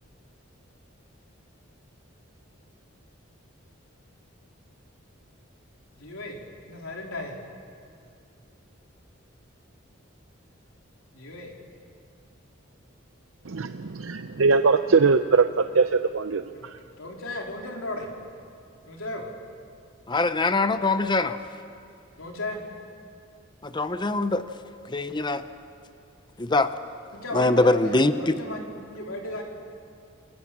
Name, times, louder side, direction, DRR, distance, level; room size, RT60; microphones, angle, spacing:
voice 1, 6.0-6.4 6.6-7.4 11.1-11.5 16.5-16.7 17.0-18.1 18.9-19.3 22.2-22.6 27.1-29.4, left 2 dB, 90° left, 0 dB, 3.8 m, -35 dB
voice 2, 13.5-15.5 15.7-16.4, right 4 dB, 75° right, 9 dB, 0.6 m, -21 dB
voice 3, 20.1-21.4 23.6-24.5 24.9-25.4 26.4-26.7 27.3-28.4, left 2 dB, 20° left, 11 dB, 0.6 m, -23 dB
28.5 x 21.0 x 7.4 m, 2.4 s
head